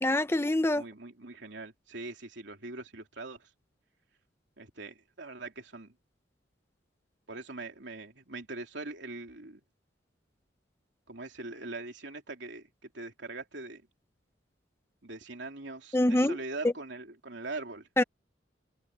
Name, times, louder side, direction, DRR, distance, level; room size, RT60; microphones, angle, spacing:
voice 1, 0.0-0.8 15.9-16.4 18.0-18.1, left 1 dB, 15° left, 0.7 m, -25 dB
voice 2, 0.7-3.5 4.6-5.9 7.3-9.6 11.1-13.8 15.0-18.0, right 2 dB, 70° right, 3.3 m, -42 dB
head